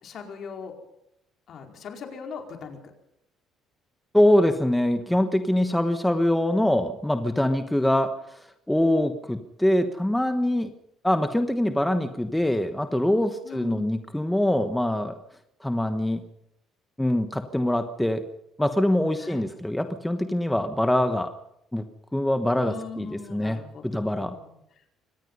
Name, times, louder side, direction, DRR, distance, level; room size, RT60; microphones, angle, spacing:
voice 1, 0.0-0.8 1.5-2.9 13.4-13.9 19.2-19.5 22.6-24.6, left 5 dB, 50° left, 3 dB, 4.7 m, -40 dB
voice 2, 4.1-8.1 8.7-10.7 11.0-15.1 15.6-16.2 17.0-18.2 18.6-21.3 21.7-21.9 22.1-23.6 23.9-24.3, left 1 dB, 5° left, 8 dB, 1.2 m, -23 dB
24.5 x 19.0 x 5.6 m, 0.77 s
cardioid pair, 125°, 0 cm